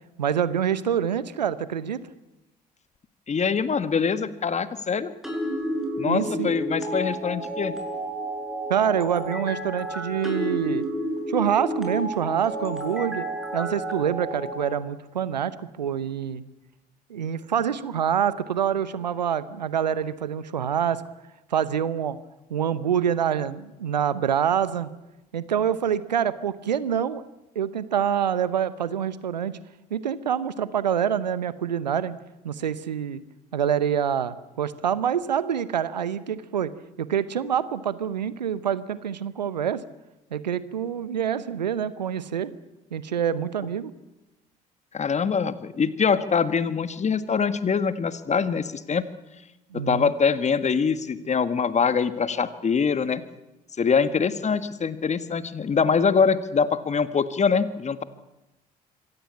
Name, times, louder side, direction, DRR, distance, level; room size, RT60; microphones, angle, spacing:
voice 1, 0.2-2.0 6.1-6.5 8.7-10.9 11.3-13.3 13.5-16.4 17.1-21.0 21.5-22.2 22.5-24.9 25.3-27.2 27.5-29.5 29.9-32.2 32.4-33.2 33.5-36.7 37.0-39.8 40.3-42.5 42.9-43.9 49.7-50.1, right 8 dB, 85° right, 17 dB, 0.9 m, -26 dB
voice 2, 3.3-5.1 6.0-7.7 44.9-49.0 49.7-53.2 53.8-58.0, left 6 dB, 35° left, 13 dB, 1.6 m, -24 dB
Nightime song, 5.2-14.6, right 1 dB, ahead, 7.2 m, -31 dB
25.0 x 17.0 x 8.7 m, 0.99 s
figure-of-eight pair, 55°, 21 cm